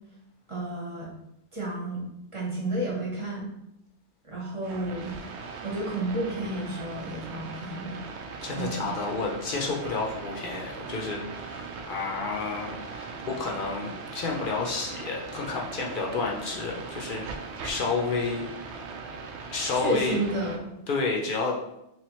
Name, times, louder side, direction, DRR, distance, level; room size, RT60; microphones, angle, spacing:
voice 1, 0.5-1.1 1.5-2.1 2.3-3.5 4.2-5.1 5.6-8.0 8.6-8.9 19.7-20.7, right 1 dB, 30° right, -4 dB, 0.9 m, -31 dB
sound 1, 4.6-20.6, right 4 dB, 80° right, 0.9 m, -40 dB
voice 2, 8.4-18.5 19.5-20.2 20.9-21.6, left 4 dB, 55° left, -2 dB, 0.8 m, -30 dB
3.2 x 3.2 x 3.0 m, 0.84 s
omnidirectional pair, 1.1 m